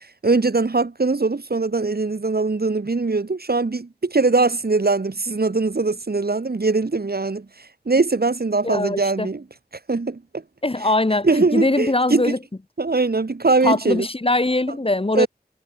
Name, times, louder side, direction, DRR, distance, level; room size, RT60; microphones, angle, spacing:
voice 1, 0.2-7.5 7.8-9.4 9.9-10.4 11.2-12.3 12.8-14.1 15.1-15.3, right 3 dB, 65° right, 1.4 m, -21 dB
voice 2, 8.6-9.3 10.6-12.4 13.6-15.3, left 2 dB, 35° left, 1.1 m, -21 dB
wide cardioid pair, 45°, 17 cm